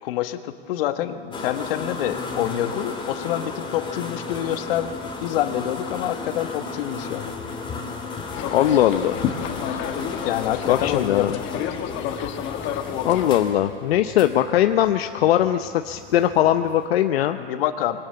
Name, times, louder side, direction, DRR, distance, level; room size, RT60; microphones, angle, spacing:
voice 1, 0.0-4.9 5.2-7.3 10.2-11.3 17.2-18.0, left 12 dB, 70° left, 9 dB, 1.4 m, -27 dB
sound 1, 1.3-16.9, left 3 dB, 15° left, 2.8 m, -35 dB
sound 2, 8.3-13.4, left 9 dB, 40° left, 1.6 m, -30 dB
voice 2, 8.5-9.2 10.7-11.3 13.0-17.4, left 12 dB, 85° left, 8 dB, 0.8 m, -20 dB
23.0 x 18.0 x 8.4 m, 2.3 s
supercardioid pair, 130°, 30 cm